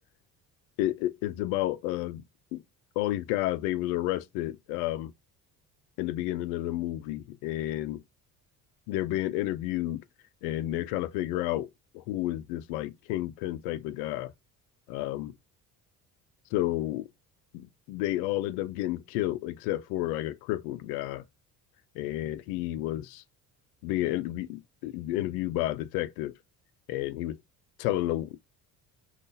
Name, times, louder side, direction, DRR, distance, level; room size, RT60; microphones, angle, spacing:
voice 1, 0.8-2.2 2.5-2.6 3.0-5.1 6.0-8.0 8.9-10.0 10.4-14.3 14.9-15.3 16.5-17.1 17.5-21.2 22.0-23.2 23.8-26.4 26.9-27.4 27.8-28.4, left 15 dB, 80° left, 0.5 m, -31 dB
5.3 x 2.4 x 2.6 m
hypercardioid pair, 65°, 45 cm